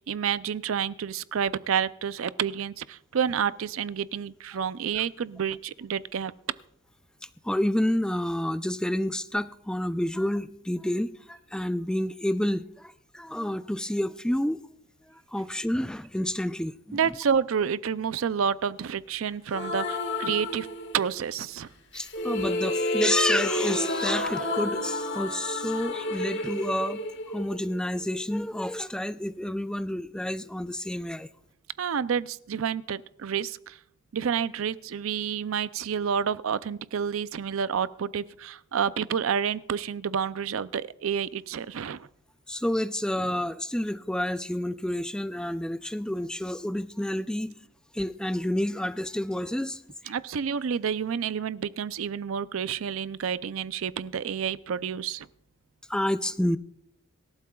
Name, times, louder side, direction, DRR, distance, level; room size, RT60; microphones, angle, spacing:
voice 1, 0.0-6.3 16.9-20.7 20.9-21.7 31.8-33.8 34.1-42.1 50.1-55.3, right 7 dB, 75° right, 16 dB, 0.4 m, -29 dB
voice 2, 7.4-14.6 15.1-17.0 21.9-31.3 42.5-47.5 47.9-49.8 55.9-56.6, left 1 dB, 5° left, 12 dB, 0.4 m, -29 dB
sound 1, 19.5-21.2 21.9-28.0, left 1 dB, 60° left, 1.6 m, -30 dB
25.0 x 12.0 x 2.3 m, 0.72 s
head